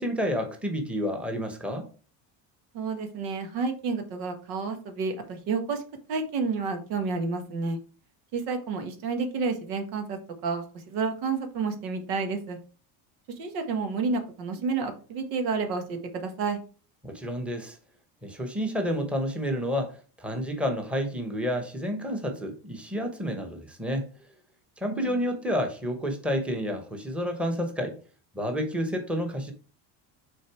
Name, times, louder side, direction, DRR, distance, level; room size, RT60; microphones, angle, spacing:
voice 1, 0.0-1.9 17.0-17.8 18.2-24.1 24.8-28.0 28.3-29.5, equal, ahead, 1.0 m, -30 dB
voice 2, 2.7-5.8 6.1-7.8 8.3-12.6 13.3-16.6 24.8-25.2, right 4 dB, 90° right, 1.6 m, -30 dB
6.4 x 3.9 x 4.7 m
cardioid pair, 130°, 50 cm